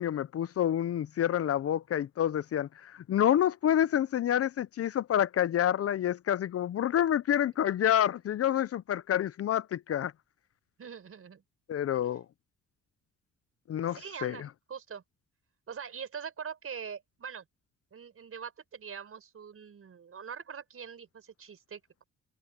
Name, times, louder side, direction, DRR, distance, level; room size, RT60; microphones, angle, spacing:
voice 1, 0.0-10.1 11.7-12.2 13.7-14.4, left 10 dB, 50° left, 0.6 m, -28 dB
voice 2, 10.8-11.4 11.9-12.1 13.8-15.0 15.7-17.4 17.9-22.0, right 7 dB, 50° right, 5.9 m, -43 dB
open air
cardioid pair, 90°, 30 cm